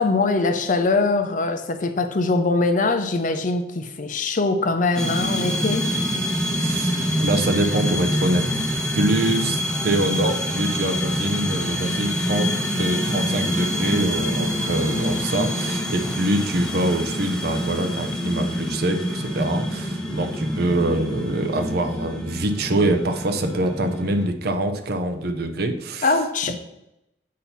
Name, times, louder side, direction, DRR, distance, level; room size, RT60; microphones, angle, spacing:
voice 1, 0.0-5.9 26.0-26.6, left 3 dB, 45° left, 0.6 m, -22 dB
sound 1, 5.0-24.3, equal, 5° left, 0.7 m, -26 dB
voice 2, 6.6-26.1 26.5-26.6, right 1 dB, 60° right, 0.6 m, -25 dB
8.5 x 2.8 x 5.6 m
head